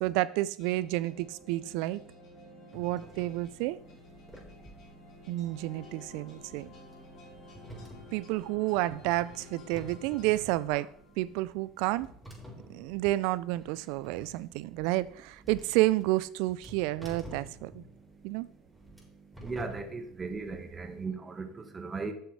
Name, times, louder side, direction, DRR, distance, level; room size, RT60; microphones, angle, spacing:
voice 1, 0.0-2.0 2.7-3.8 5.3-6.7 8.1-10.9 11.2-12.1 12.7-17.8 18.2-18.5, right 17 dB, 65° right, 0.4 m, -30 dB
sound 1, 0.6-11.2, left 3 dB, 50° left, 3.5 m, -53 dB
sound 2, 2.7-21.0, right 1 dB, 5° right, 4.4 m, -51 dB
voice 2, 19.4-22.1, right 4 dB, 25° right, 1.5 m, -37 dB
8.0 x 6.8 x 4.7 m
hypercardioid pair, 75°, 0 cm